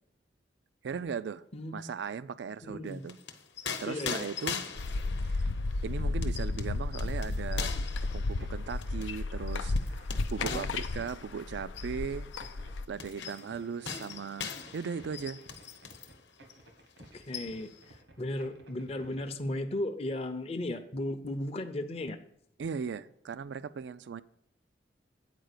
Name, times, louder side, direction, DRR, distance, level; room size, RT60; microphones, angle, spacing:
voice 1, 0.8-1.4 1.7-3.2 3.8-4.6 5.3-5.5 5.8-7.7 8.1-12.3 12.9-15.4 22.6-24.2, right 6 dB, 70° right, 0.4 m, -38 dB
voice 2, 2.6-3.1 3.9-4.3 10.4-10.7 17.1-17.7 18.2-22.2, left 1 dB, 30° left, 0.6 m, -35 dB
sound 1, 2.9-16.2 16.5-16.7 17.0-17.8, left 6 dB, 70° left, 0.9 m, -42 dB
sound 2, 4.8-12.9, left 2 dB, 85° left, 0.5 m, -33 dB
sound 3, 7.0-19.3, right 1 dB, 90° right, 1.6 m, -55 dB
9.0 x 4.7 x 6.6 m
head